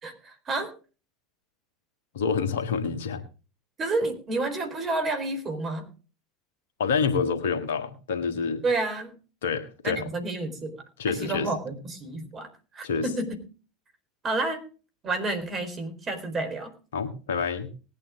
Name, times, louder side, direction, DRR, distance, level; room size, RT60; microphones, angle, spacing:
voice 1, 0.0-0.7 3.8-5.9 8.6-9.1 9.8-12.5 12.7-13.4 14.2-14.6 15.0-16.7, right 2 dB, 35° right, 7 dB, 4.4 m, -30 dB
voice 2, 2.1-3.2 6.8-8.6 9.4-10.0 11.0-11.5 12.8-13.1 16.9-17.7, left 5 dB, 75° left, 7 dB, 1.7 m, -27 dB
20.0 x 9.1 x 3.7 m, 0.35 s
hypercardioid pair, 80°, 0 cm